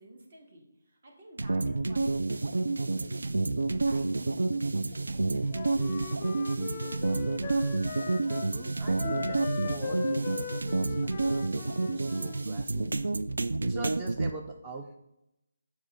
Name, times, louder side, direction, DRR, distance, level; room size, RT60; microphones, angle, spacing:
voice 1, 0.0-7.8, right 1 dB, 55° right, 0 dB, 1.8 m, -52 dB
sound 1, 1.4-14.3, right 2 dB, 80° right, 0.3 m, -29 dB
Wind instrument woodwind instrument, 5.5-8.5 9.0-12.4, left 7 dB, 30° left, 0.5 m, -39 dB
Wind instrument woodwind instrument 2, 7.7-11.2, equal, 80° left, 0.5 m, -51 dB
voice 2, 8.5-13.1 13.6-15.0, right 3 dB, 25° right, 3 dB, 0.5 m, -43 dB
7.2 x 2.6 x 5.5 m, 0.85 s
figure-of-eight pair, 155°, 0 cm